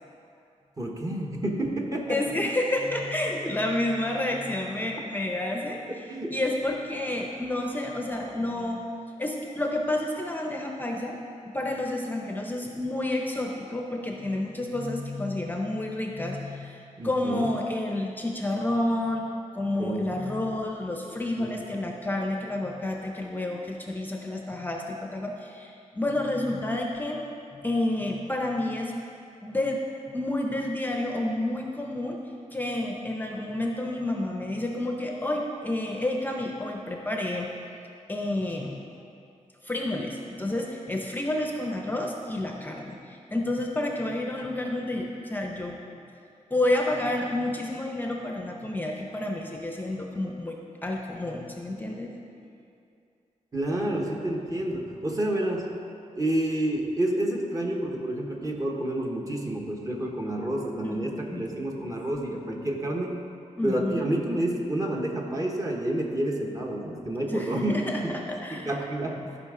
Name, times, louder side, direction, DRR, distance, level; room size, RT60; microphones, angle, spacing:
voice 1, 0.8-2.3 3.4-3.5 4.8-4.9 6.1-6.3 17.0-17.5 19.8-20.2 21.4-21.5 53.5-55.7 56.2-63.2 63.6-67.7 68.0-68.1 68.5-69.2, right 1 dB, 30° right, 0 dB, 1.0 m, -29 dB
voice 2, 2.1-5.8 6.3-8.9 9.2-11.1 11.5-19.3 19.5-27.2 27.5-29.0 29.4-29.8 30.1-32.2 32.5-37.5 38.1-38.8 39.6-45.8 46.5-50.6 50.8-52.1 60.8-61.0 61.3-61.7 63.6-64.1 67.3-68.8 69.2-69.3, left 1 dB, 15° left, 0 dB, 0.6 m, -30 dB
14.0 x 5.1 x 3.7 m, 2.5 s
wide cardioid pair, 130°, 13 cm